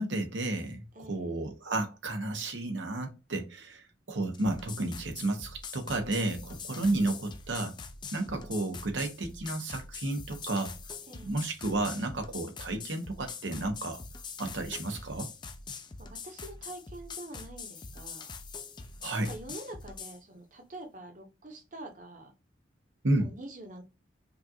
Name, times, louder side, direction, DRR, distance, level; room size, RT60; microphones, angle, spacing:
voice 1, 0.0-7.7 8.1-10.8 11.2-14.0 14.4-15.3 19.0-19.3 23.0-23.3, right 2 dB, 80° right, 1.1 m, -32 dB
voice 2, 0.9-1.3 6.7-7.0 11.1-11.4 16.0-18.3 19.1-22.3 23.2-23.8, right 1 dB, 45° right, 1.0 m, -46 dB
sound 1, 4.3-20.2, left 5 dB, 25° left, 0.4 m, -44 dB
5.3 x 2.4 x 2.7 m
head